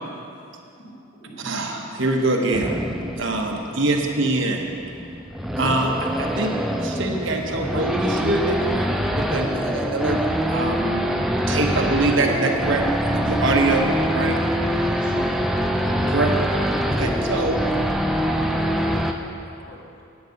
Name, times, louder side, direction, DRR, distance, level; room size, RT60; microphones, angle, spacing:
voice 1, 0.7-1.9 3.0-3.2 3.5-3.8 6.0-6.1 7.4-7.8 14.8-15.3, right 1 dB, 50° left, -4 dB, 2.0 m, -42 dB
voice 2, 1.4-2.7 3.2-4.7 5.6-6.5 6.8-8.9 9.1-10.2 10.5-11.1 11.5-12.8 13.1-14.4 16.1-16.3 16.9-17.5, right 2 dB, 60° right, 1 dB, 1.1 m, -24 dB
Race car auto racing / Idling / Accelerating revving vroom, 2.5-19.1, equal, ahead, 0.4 m, -24 dB
voice 3, 17.4-20.0, equal, 75° left, -2 dB, 1.4 m, -40 dB
9.6 x 9.0 x 5.2 m, 2.6 s
head